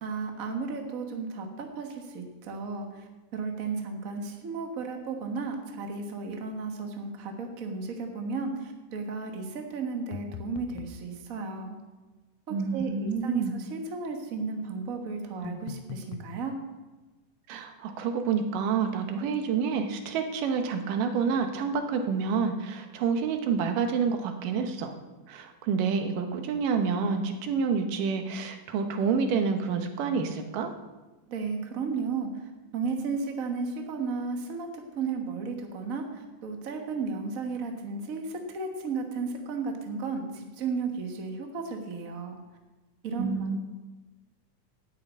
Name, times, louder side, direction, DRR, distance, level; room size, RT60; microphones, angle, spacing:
voice 1, 0.0-11.8 12.5-16.5 31.3-32.3 32.7-42.4 43.0-43.5, right 4 dB, 55° right, 3 dB, 0.9 m, -34 dB
sound 1, 10.1-11.0 15.4-16.3, left 8 dB, 80° left, 2.2 m, -41 dB
voice 2, 12.5-13.6 17.5-24.9 25.3-30.7 43.2-43.6, right 5 dB, 85° right, 6 dB, 2.6 m, -28 dB
10.0 x 6.7 x 8.4 m, 1.2 s
omnidirectional pair, 3.7 m